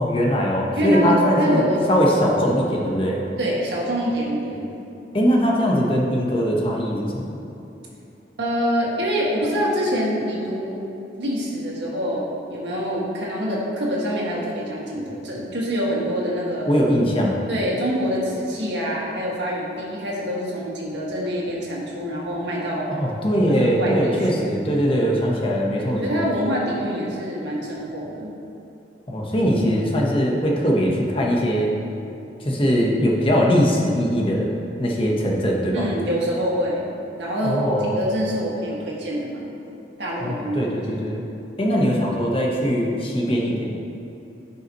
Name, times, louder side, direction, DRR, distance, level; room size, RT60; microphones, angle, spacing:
voice 1, 0.0-3.2 5.1-7.4 16.7-17.4 22.9-26.2 29.1-31.7 32.4-34.5 34.8-35.9 37.4-37.9 40.2-41.2 41.6-43.8, equal, 30° left, -2 dB, 1.1 m, -21 dB
voice 2, 0.8-2.0 3.4-4.7 8.4-10.9 11.2-16.7 17.5-22.9 23.5-24.6 25.8-28.3 35.7-36.9 37.2-39.4 40.0-41.2, equal, 80° right, -4 dB, 1.9 m, -25 dB
15.5 x 5.6 x 3.0 m, 2.9 s
head